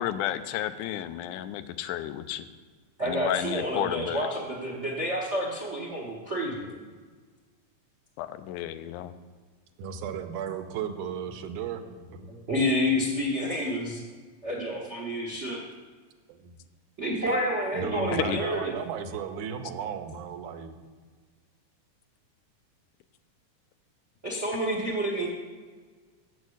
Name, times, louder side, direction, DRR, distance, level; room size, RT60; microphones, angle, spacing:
voice 1, 0.0-2.4 3.0-4.3 8.2-9.1 18.1-18.4, left 12 dB, 90° left, 11 dB, 2.1 m, -32 dB
voice 2, 3.0-6.7 12.1-14.0 14.4-15.6 17.0-18.7 24.2-25.3, equal, 65° right, -2 dB, 0.7 m, -29 dB
voice 3, 9.8-11.8 16.3-16.6 17.7-20.8, right 7 dB, 85° right, 7 dB, 2.2 m, -34 dB
7.2 x 6.4 x 7.8 m, 1.5 s
omnidirectional pair, 3.5 m